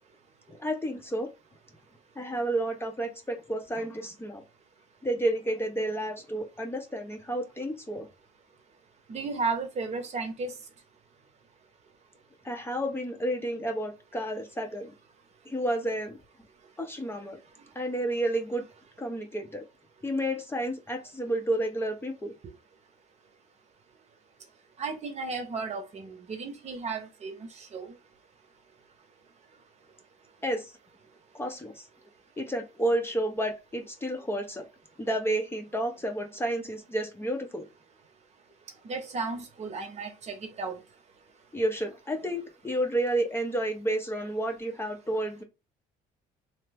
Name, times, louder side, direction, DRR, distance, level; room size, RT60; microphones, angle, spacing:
voice 1, 0.5-1.3 2.2-4.4 5.0-8.1 12.4-14.9 15.5-16.2 16.8-17.4 17.7-18.6 19.0-19.6 20.0-22.3 30.4-30.7 31.3-31.9 32.4-34.6 35.0-37.6 41.5-45.4, right 1 dB, 15° left, 0.6 m, -31 dB
voice 2, 9.1-10.5 24.8-28.0 38.8-40.8, right 4 dB, 40° right, 0.8 m, -34 dB
3.0 x 2.0 x 3.4 m
cardioid pair, 110°, 17 cm